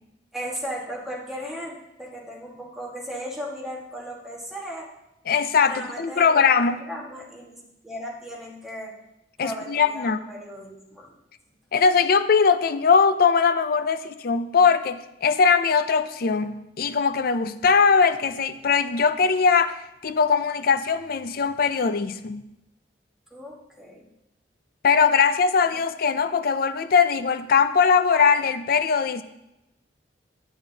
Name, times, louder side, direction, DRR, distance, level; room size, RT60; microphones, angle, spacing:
voice 1, 0.3-4.9 5.7-9.0 9.4-11.1 23.3-24.1, equal, ahead, -4 dB, 1.6 m, -36 dB
voice 2, 5.3-6.8 9.4-10.2 11.7-19.8 20.0-22.5 24.8-29.2, left 5 dB, 55° left, 11 dB, 0.5 m, -20 dB
9.7 x 8.6 x 2.8 m, 0.90 s
head